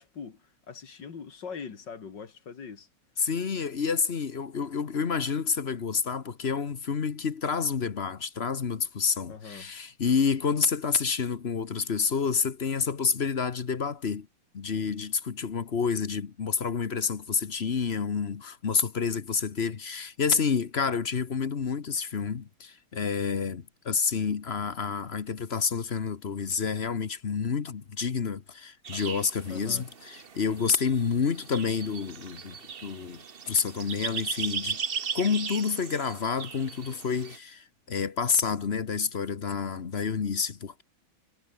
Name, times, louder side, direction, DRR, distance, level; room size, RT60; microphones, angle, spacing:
voice 1, 0.0-2.9 9.3-9.7 29.5-29.8, left 6 dB, 55° left, 2.7 m, -42 dB
voice 2, 3.2-14.3 14.5-34.8 35.1-40.8, left 6 dB, 40° left, 1.1 m, -29 dB
sound 1, 28.8-37.4, right 6 dB, 45° right, 0.8 m, -38 dB
omnidirectional pair, 2.3 m